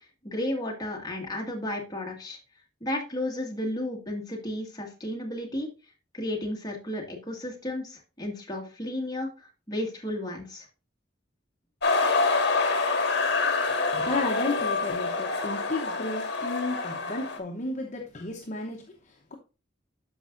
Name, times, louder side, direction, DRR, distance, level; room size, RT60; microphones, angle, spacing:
voice 1, 0.2-2.4 2.8-5.7 6.1-10.7, left 1 dB, 20° left, 1.9 m, -33 dB
sound 1, 11.8-17.4, left 3 dB, 60° left, 1.6 m, -26 dB
voice 2, 13.9-19.4, left 2 dB, 40° left, 0.9 m, -33 dB
12.0 x 5.2 x 2.5 m
head